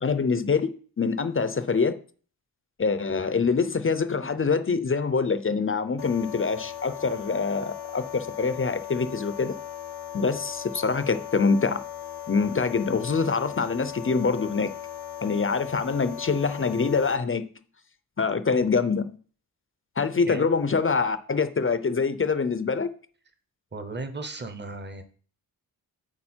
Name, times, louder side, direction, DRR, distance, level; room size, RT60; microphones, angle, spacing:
voice 1, 0.0-0.7 1.0-1.9 2.8-9.5 10.1-11.8 12.3-14.7 15.2-17.5 18.2-19.2 20.0-22.9, left 5 dB, 35° left, 0.4 m, -25 dB
sound 1, 6.0-17.2, left 10 dB, 85° left, 0.6 m, -38 dB
voice 2, 23.7-25.0, right 3 dB, 30° right, 0.8 m, -35 dB
8.7 x 4.1 x 4.4 m
wide cardioid pair, 165°, 39 cm